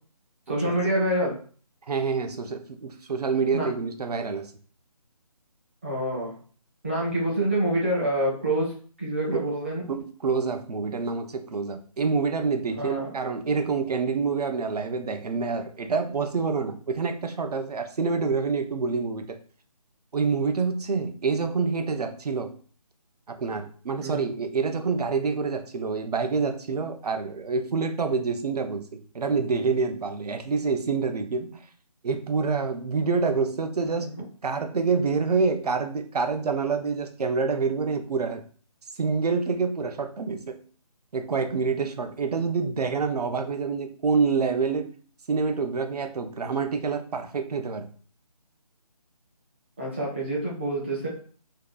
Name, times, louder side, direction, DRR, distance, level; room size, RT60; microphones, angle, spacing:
voice 1, 0.5-1.4 3.5-3.7 5.8-6.4 6.8-9.8 12.8-13.1 24.0-24.2 34.0-34.1 49.8-51.1, right 1 dB, 20° right, -5 dB, 0.5 m, -27 dB
voice 2, 1.9-4.5 9.3-9.5 9.9-19.4 20.1-22.5 23.3-31.6 32.0-34.2 34.4-38.4 39.0-40.6 41.1-44.9 45.3-47.9, right 4 dB, 80° right, 7 dB, 0.5 m, -27 dB
2.6 x 2.2 x 2.3 m, 0.43 s
figure-of-eight pair, 165°, 20 cm